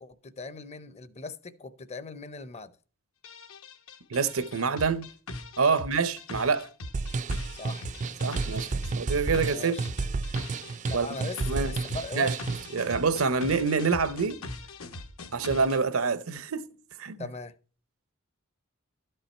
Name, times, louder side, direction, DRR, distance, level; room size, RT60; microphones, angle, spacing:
voice 1, 0.0-2.7 5.7-5.9 7.6-7.9 9.2-9.9 10.9-12.4 17.2-17.5, left 3 dB, 30° left, 0.6 m, -40 dB
sound 1, 3.2-15.8, left 2 dB, 75° left, 1.0 m, -41 dB
voice 2, 4.1-5.1 5.6-6.7 8.2-8.7 9.0-9.8 10.9-11.1 11.5-11.8 12.1-12.4 12.7-14.4 15.3-16.7 17.0-17.2, right 5 dB, 70° right, 0.8 m, -26 dB
sound 2, 6.9-12.8, right 3 dB, 35° right, 0.4 m, -32 dB
12.5 x 5.6 x 4.3 m
head